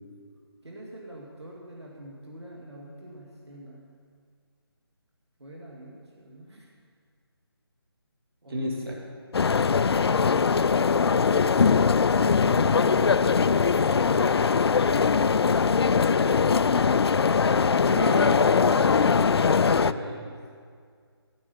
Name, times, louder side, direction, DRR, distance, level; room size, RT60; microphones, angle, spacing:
voice 1, 0.6-3.9 5.4-6.7 8.4-8.7 20.2-20.4, right 1 dB, 90° right, -2 dB, 2.3 m, -44 dB
voice 2, 8.5-9.0 17.8-19.3 19.6-20.2, equal, 60° right, -2 dB, 3.1 m, -33 dB
sound 1, 9.3-19.9, left 5 dB, 70° left, 0.4 m, -21 dB
14.5 x 9.6 x 5.5 m, 2.1 s
figure-of-eight pair, 160°, 14 cm